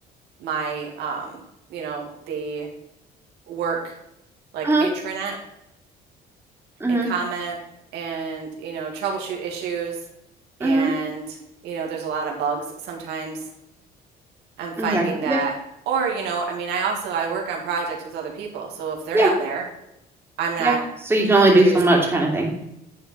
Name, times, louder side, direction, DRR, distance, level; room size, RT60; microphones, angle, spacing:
voice 1, 0.4-1.4 1.7-2.7 3.5-3.9 4.5-5.4 6.9-7.6 7.9-10.0 10.6-11.4 11.6-13.4 14.6-15.5 15.9-19.6 20.4-20.8 21.5-22.0, right 5 dB, 80° right, 0 dB, 2.2 m, -28 dB
voice 2, 10.6-10.9 14.8-15.4 19.1-19.3 20.6-20.7 21.1-22.6, right 2 dB, 15° right, -1 dB, 2.8 m, -18 dB
10.5 x 4.5 x 6.0 m, 0.84 s
cardioid pair, 110°, 17 cm